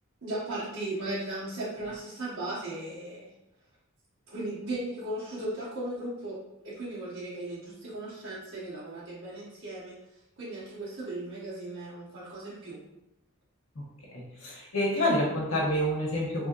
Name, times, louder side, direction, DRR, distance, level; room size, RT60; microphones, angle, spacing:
voice 1, 0.2-3.2 4.3-6.4 6.6-10.0 10.4-12.8, right 1 dB, 60° right, -11 dB, 1.1 m, -36 dB
voice 2, 14.1-16.5, left 1 dB, 75° left, -3 dB, 1.0 m, -28 dB
3.2 x 2.7 x 2.4 m, 0.91 s
head